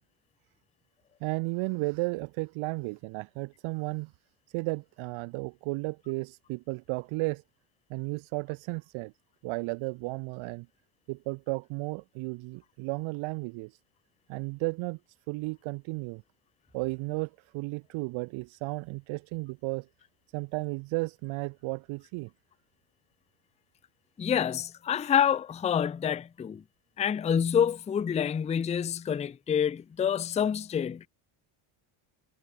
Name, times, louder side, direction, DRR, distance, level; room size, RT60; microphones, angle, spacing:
voice 1, 1.2-4.1 4.5-7.4 7.9-9.1 9.4-10.7 11.1-13.8 14.3-15.0 15.3-16.2 16.7-19.9 20.3-22.3, right 25 dB, 75° right, 0.7 m, -34 dB
voice 2, 24.2-26.6 27.0-31.1, left 8 dB, 15° left, 0.4 m, -27 dB
cardioid pair, 140°, 48 cm